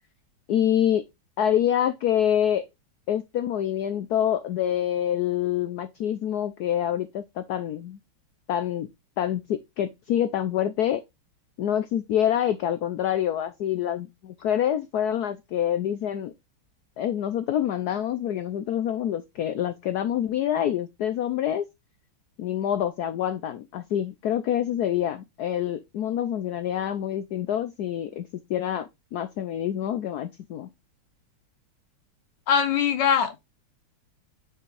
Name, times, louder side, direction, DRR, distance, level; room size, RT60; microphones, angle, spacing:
voice 1, 0.5-1.0 1.4-2.7 3.1-8.0 8.5-8.9 9.2-11.0 11.6-16.3 17.0-21.6 22.4-30.7, left 10 dB, 90° left, 0.8 m, -26 dB
voice 2, 32.5-33.4, left 7 dB, 65° left, 1.2 m, -22 dB
6.1 x 5.7 x 3.2 m
omnidirectional pair, 2.3 m